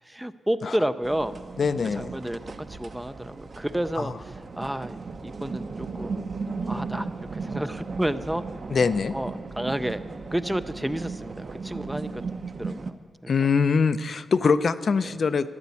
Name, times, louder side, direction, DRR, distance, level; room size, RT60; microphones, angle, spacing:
voice 1, 0.1-1.4 1.9-2.4 2.7-4.1 4.6-6.2 6.7-7.1 7.3-8.4 9.1-10.0 10.3-13.0 13.2-13.3 15.0-15.1, right 1 dB, 5° right, 12 dB, 0.4 m, -30 dB
sound 1, 1.0-12.9, right 4 dB, 40° right, 0.9 m, -36 dB
voice 2, 1.6-2.1 4.0-4.1 8.7-9.1 13.3-15.5, left 5 dB, 50° left, 12 dB, 0.5 m, -23 dB
13.0 x 11.0 x 8.3 m, 2.1 s
wide cardioid pair, 155°, 0 cm